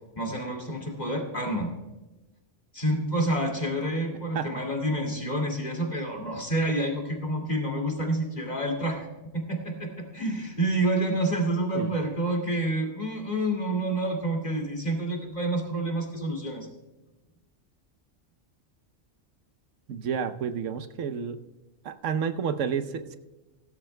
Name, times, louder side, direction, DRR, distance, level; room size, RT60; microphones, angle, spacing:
voice 1, 0.2-1.7 2.7-9.1 9.3-16.7, right 1 dB, 35° left, 2 dB, 2.4 m, -28 dB
voice 2, 19.9-21.4 21.8-23.2, right 7 dB, 85° right, 10 dB, 1.1 m, -30 dB
16.5 x 14.0 x 2.2 m, 1.1 s
omnidirectional pair, 1.2 m